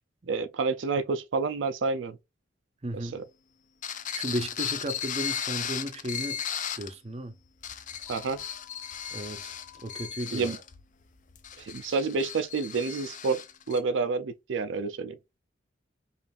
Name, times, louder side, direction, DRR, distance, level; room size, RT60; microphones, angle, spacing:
voice 1, 0.3-2.2 3.1-3.2 8.1-8.4 10.3-10.6 11.6-15.2, right 4 dB, 80° right, 0.5 m, -29 dB
voice 2, 2.8-3.2 4.1-6.4 6.7-7.4 9.1-9.6 9.8-10.5, right 1 dB, 35° right, 0.6 m, -34 dB
sound 1, 3.8-6.9 7.5-13.8, left 8 dB, 40° left, 0.5 m, -36 dB
sound 2, 8.1-10.1, left 15 dB, 5° left, 0.7 m, -53 dB
5.3 x 2.5 x 2.4 m
head